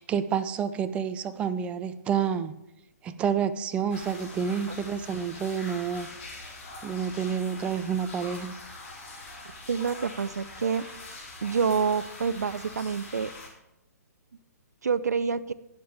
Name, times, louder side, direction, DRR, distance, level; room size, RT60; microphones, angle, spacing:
voice 1, 0.0-2.6 3.0-6.1 6.8-8.6, right 7 dB, 10° right, 14 dB, 0.4 m, -29 dB
sound 1, 3.9-13.5, left 2 dB, 45° left, 4.6 m, -43 dB
voice 2, 9.7-10.9 11.4-13.3 14.8-15.5, right 5 dB, 65° right, 17 dB, 0.5 m, -27 dB
17.5 x 6.7 x 3.4 m, 0.88 s
figure-of-eight pair, 125°, 9 cm